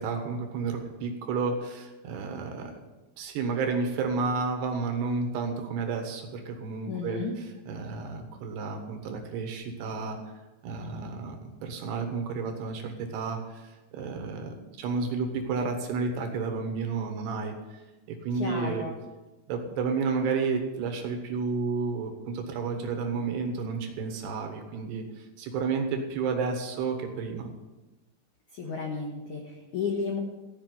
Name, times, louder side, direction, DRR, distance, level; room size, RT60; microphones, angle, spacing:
voice 1, 0.0-2.7 3.2-10.2 10.6-17.5 18.1-18.9 19.5-27.5, right 4 dB, 65° right, 3 dB, 3.2 m, -31 dB
voice 2, 6.8-7.3 18.4-18.9 28.5-30.2, left 5 dB, 75° left, 1 dB, 1.8 m, -33 dB
15.5 x 5.8 x 9.3 m, 1.1 s
omnidirectional pair, 5.8 m